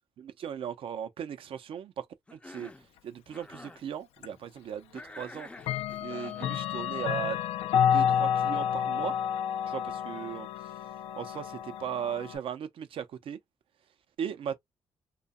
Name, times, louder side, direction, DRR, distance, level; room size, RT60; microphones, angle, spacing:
voice 1, 0.2-2.1 2.3-2.7 3.0-5.5 6.0-7.4 7.7-9.1 9.7-10.7 11.2-13.4 14.2-14.6, right 8 dB, 65° right, 0.5 m, -37 dB
Cough, 2.3-2.9 3.3-3.8 4.9-6.5, left 2 dB, 10° left, 0.4 m, -47 dB
Clock, 4.2-4.3 5.6-12.4, left 9 dB, 90° left, 0.4 m, -29 dB
2.7 x 2.2 x 2.4 m
cardioid pair, 85°, 10 cm